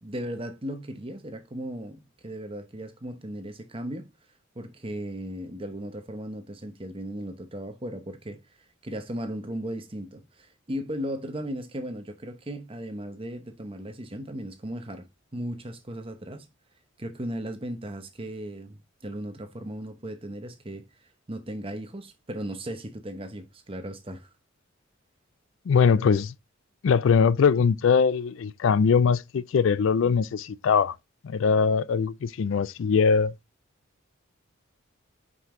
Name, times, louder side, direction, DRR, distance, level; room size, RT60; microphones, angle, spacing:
voice 1, 0.0-4.1 4.5-8.4 8.8-16.5 17.0-20.8 21.3-24.3, equal, 25° right, 0.9 m, -36 dB
voice 2, 25.7-26.3 26.8-30.9 31.2-33.3, left 6 dB, 65° left, 0.4 m, -21 dB
5.5 x 5.4 x 3.6 m
head